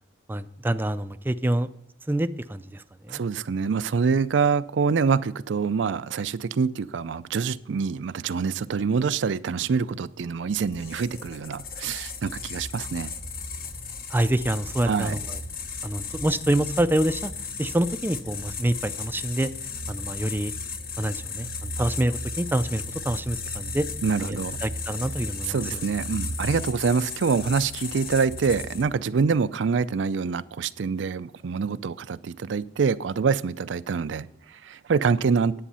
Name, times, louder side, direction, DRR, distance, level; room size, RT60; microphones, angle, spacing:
voice 1, 0.3-1.7 2.1-3.2 14.1-15.2 15.8-17.3 17.6-19.5 19.9-20.5 21.0-23.9 24.2-25.6, right 1 dB, 10° right, 10 dB, 0.4 m, -26 dB
voice 2, 3.1-13.1 14.9-15.2 24.0-24.6 25.5-35.6, right 5 dB, 75° right, 14 dB, 0.4 m, -25 dB
sound 1, 10.7-29.0, left 4 dB, 55° left, 1.1 m, -35 dB
10.0 x 8.8 x 5.5 m, 0.79 s
head